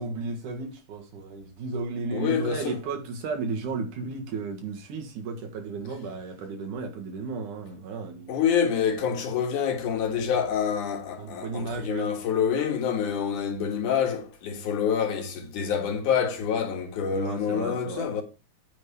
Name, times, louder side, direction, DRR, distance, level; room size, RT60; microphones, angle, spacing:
voice 1, 0.0-8.4 11.2-12.1 17.1-18.1, right 4 dB, 85° right, 3.1 m, -34 dB
voice 2, 2.1-2.8 8.3-18.2, left 7 dB, 85° left, 3.1 m, -27 dB
9.1 x 3.7 x 6.9 m
omnidirectional pair, 3.5 m